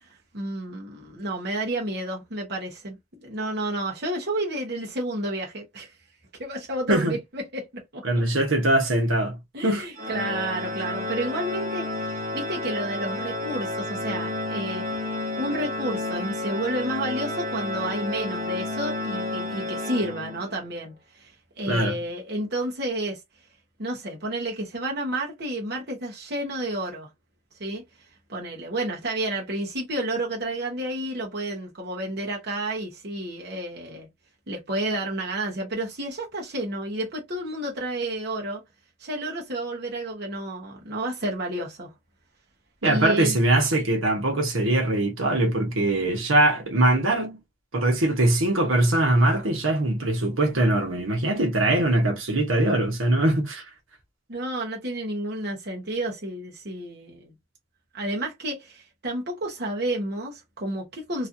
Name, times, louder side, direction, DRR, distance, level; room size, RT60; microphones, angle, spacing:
voice 1, 0.0-5.9 6.4-8.0 9.5-15.0 15.3-23.2 23.8-27.1 27.6-27.8 28.3-34.1 34.5-38.6 39.0-41.9 42.8-43.4 54.3-57.3 57.9-61.3, right 1 dB, 55° right, 1.0 m, -31 dB
voice 2, 8.0-9.4 9.6-9.8 21.7-22.0 42.8-47.4 47.7-53.6, right 1 dB, 80° right, 1.2 m, -22 dB
Organ, 10.0-20.7, left 2 dB, 35° right, 1.1 m, -31 dB
3.1 x 2.5 x 2.7 m
head